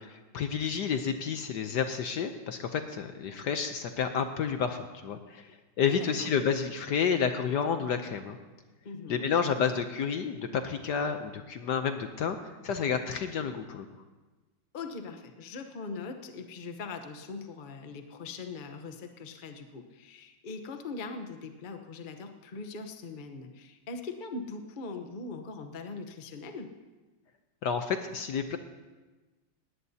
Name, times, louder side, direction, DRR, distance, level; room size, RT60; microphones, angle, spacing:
voice 1, 0.0-5.5 5.8-8.4 9.1-13.9 27.6-28.6, left 6 dB, 65° left, 7 dB, 1.2 m, -30 dB
voice 2, 5.9-6.3 8.8-9.3 14.7-26.7, left 4 dB, 40° left, 6 dB, 0.7 m, -41 dB
19.0 x 17.5 x 2.8 m, 1.2 s
omnidirectional pair, 2.3 m